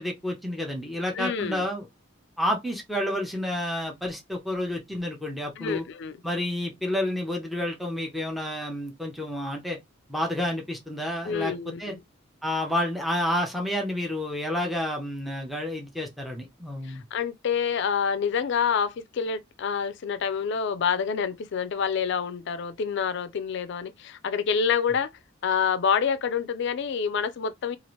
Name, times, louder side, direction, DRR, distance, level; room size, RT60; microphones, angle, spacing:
voice 1, 0.0-1.9 2.4-5.8 6.2-9.8 10.1-11.5 11.8-11.9 12.4-17.0, left 1 dB, ahead, 0.6 m, -30 dB
voice 2, 1.1-1.7 5.6-6.1 11.2-12.0 16.8-25.1 25.4-27.8, left 6 dB, 60° left, 0.4 m, -27 dB
2.9 x 2.4 x 3.1 m
head